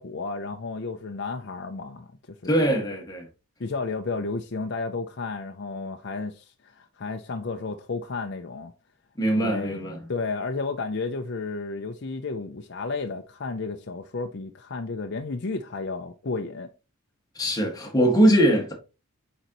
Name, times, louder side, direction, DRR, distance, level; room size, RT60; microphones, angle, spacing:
voice 1, 0.0-2.8 3.6-8.7 9.4-9.8 10.1-16.7, left 3 dB, 50° left, 0.6 m, -32 dB
voice 2, 2.4-3.3 9.2-10.1 17.4-18.7, right 1 dB, 15° left, 1.8 m, -22 dB
8.6 x 4.0 x 3.0 m
head